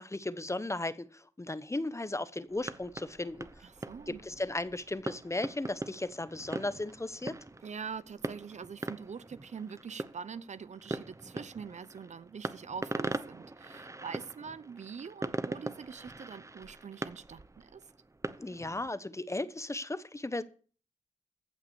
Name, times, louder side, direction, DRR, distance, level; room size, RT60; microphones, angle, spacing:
voice 1, 0.0-3.5 4.1-7.4 18.4-20.4, left 2 dB, 20° left, 1.0 m, -36 dB
sound 1, 2.5-18.9, right 2 dB, 20° right, 0.9 m, -41 dB
voice 2, 3.6-4.2 7.6-17.9, right 6 dB, 60° right, 0.7 m, -44 dB
15.5 x 5.9 x 6.9 m
cardioid pair, 50°, 14 cm